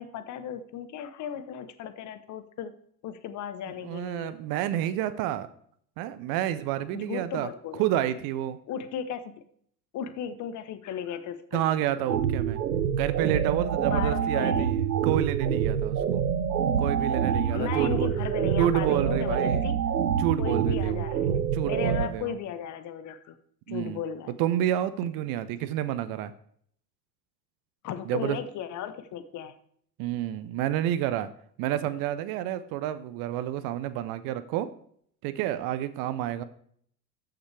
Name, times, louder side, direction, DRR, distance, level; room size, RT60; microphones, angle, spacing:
voice 1, 0.0-2.7 3.0-4.3 6.9-7.8 8.7-9.4 9.9-12.1 13.9-14.7 16.9-19.8 20.4-23.4 23.7-24.3 27.8-29.6, left 8 dB, 35° left, 11 dB, 0.9 m, -36 dB
voice 2, 3.8-5.5 6.0-7.5 7.8-8.6 11.5-12.6 13.0-16.2 16.8-18.1 18.6-19.6 20.2-21.1 21.4-22.3 23.7-24.0 24.4-26.3 28.0-28.4 30.0-31.3 31.6-34.7 35.2-36.4, right 12 dB, 45° right, 14 dB, 0.7 m, -29 dB
sound 1, 12.1-22.1, right 8 dB, 85° right, 0.7 m, -26 dB
13.5 x 5.9 x 3.3 m, 0.63 s
figure-of-eight pair, 75°, 49 cm